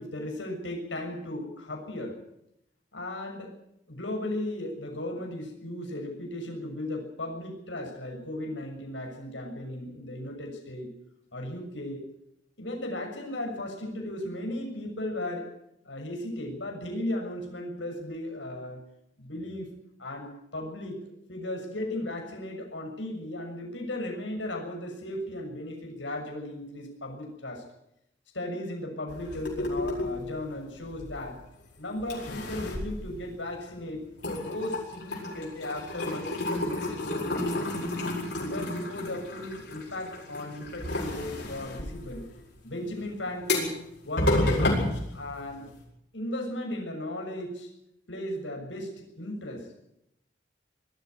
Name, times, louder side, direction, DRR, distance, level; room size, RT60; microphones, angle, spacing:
voice 1, 0.0-2.2 2.9-3.5 3.9-10.9 11.3-12.0 12.6-15.5 15.8-18.8 19.2-19.7 20.0-21.0 21.3-27.6 28.3-31.4 31.8-34.0 34.2-37.6 38.4-42.3 42.6-43.8 44.0-44.7 45.1-45.7 46.1-47.7 48.1-49.8, left 1 dB, 90° left, 2 dB, 6.7 m, -36 dB
sound 1, 29.1-31.6 32.0-33.8 34.1-45.8, left 1 dB, 65° left, 7.2 m, -31 dB
21.0 x 13.5 x 9.6 m, 0.79 s
head